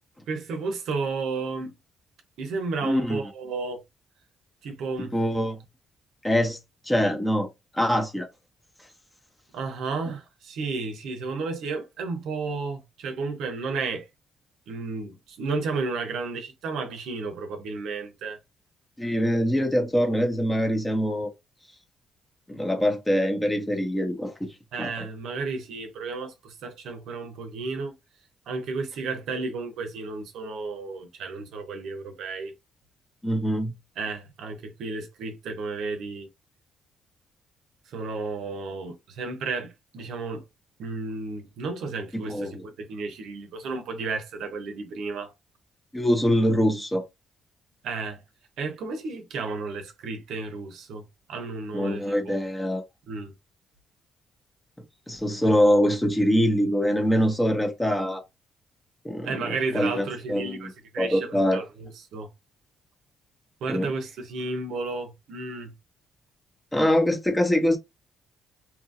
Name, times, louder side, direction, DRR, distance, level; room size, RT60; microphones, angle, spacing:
voice 1, 0.3-1.7 2.4-3.8 4.6-5.2 9.5-14.1 14.7-18.4 24.7-27.9 28.5-32.5 34.0-36.3 37.9-40.4 40.8-45.3 47.8-48.2 48.6-51.0 51.3-52.4 53.1-53.3 59.2-62.3 63.6-65.7, right 4 dB, 80° right, 0.7 m, -32 dB
voice 2, 2.8-3.2 5.0-5.6 6.2-6.6 6.9-7.5 7.7-8.3 19.0-21.3 22.5-24.5 24.8-25.1 33.2-33.7 42.1-42.7 45.9-47.0 51.7-52.8 55.1-58.2 59.0-60.7 61.0-61.6 63.7-63.9 66.7-67.8, equal, 10° left, 0.8 m, -24 dB
2.8 x 2.6 x 2.5 m
cardioid pair, 90°, 0 cm